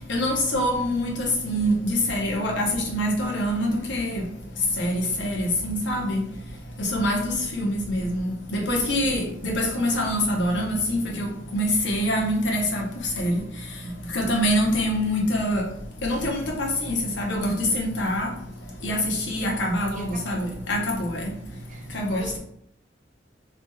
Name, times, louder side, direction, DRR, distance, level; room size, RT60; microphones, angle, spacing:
voice 1, 0.1-4.2 4.8-6.2 6.9-11.3 11.5-12.8 13.2-13.4 14.1-15.6 16.0-18.3 18.8-21.2 21.9-22.4, equal, 90° left, -1 dB, 0.8 m, -25 dB
voice 2, 8.7-9.5 19.9-20.7 21.7-22.4, right 3 dB, 45° right, 2 dB, 0.5 m, -42 dB
3.3 x 2.8 x 2.2 m, 0.72 s
head